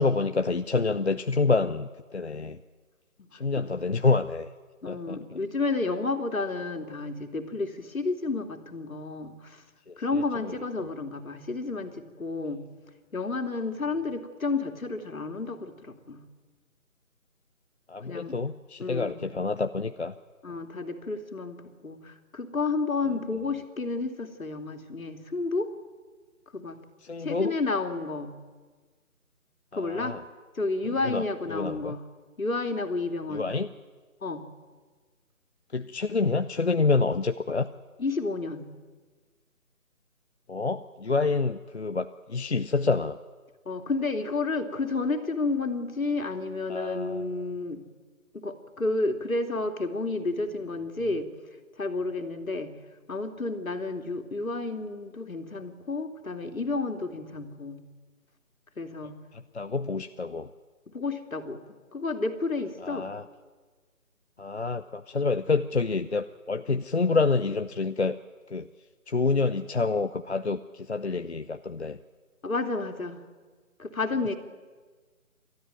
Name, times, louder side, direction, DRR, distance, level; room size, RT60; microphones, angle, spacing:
voice 1, 0.0-2.6 3.3-4.5 4.9-5.2 9.9-10.0 17.9-20.2 27.0-27.6 29.7-30.2 31.0-31.2 31.5-32.0 33.3-33.7 35.7-37.7 40.5-43.2 46.7-47.3 59.3-60.5 62.8-63.2 64.4-68.2 68.5-68.7 69.1-72.0, left 4 dB, 50° left, 9 dB, 0.6 m, -27 dB
voice 2, 3.2-3.6 4.8-9.6 10.0-12.6 13.1-16.2 18.0-18.4 18.8-19.1 20.4-25.7 26.5-26.8 27.2-28.3 29.7-30.2 30.5-32.0 32.4-33.5 34.2-34.4 38.0-38.6 43.7-47.8 48.3-51.3 51.8-52.7 53.1-57.8 58.8-59.2 60.9-61.6 61.9-63.1 72.4-73.2 73.8-74.3, left 3 dB, 70° left, 6 dB, 2.6 m, -31 dB
29.0 x 13.0 x 9.2 m, 1.4 s
figure-of-eight pair, 175°, 43 cm